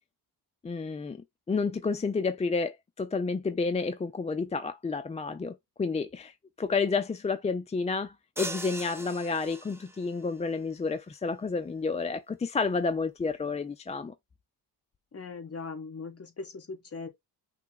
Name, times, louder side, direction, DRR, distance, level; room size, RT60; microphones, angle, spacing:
voice 1, 0.6-1.2 1.5-14.1, left 4 dB, 20° left, 0.3 m, -30 dB
sound 1, 8.4-10.2, right 2 dB, 5° right, 0.7 m, -40 dB
voice 2, 15.1-17.1, left 4 dB, 35° left, 1.4 m, -40 dB
5.9 x 2.1 x 3.8 m
cardioid pair, 115°, 42 cm